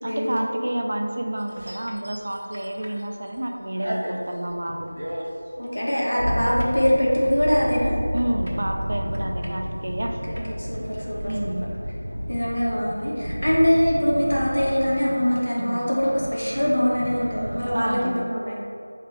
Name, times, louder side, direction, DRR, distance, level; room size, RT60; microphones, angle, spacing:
voice 1, 0.0-4.9 8.1-10.2 11.3-11.7 15.6-15.9 17.7-18.2, right 1 dB, 50° right, 3 dB, 0.4 m, -29 dB
sound 1, 1.4-3.4 3.7-17.7, equal, 70° right, 0.8 m, -32 dB
voice 2, 5.6-8.0 10.3-11.5 12.3-18.6, equal, 80° left, -5 dB, 1.3 m, -23 dB
4.8 x 3.2 x 3.5 m, 2.7 s
figure-of-eight pair, 175°, 0 cm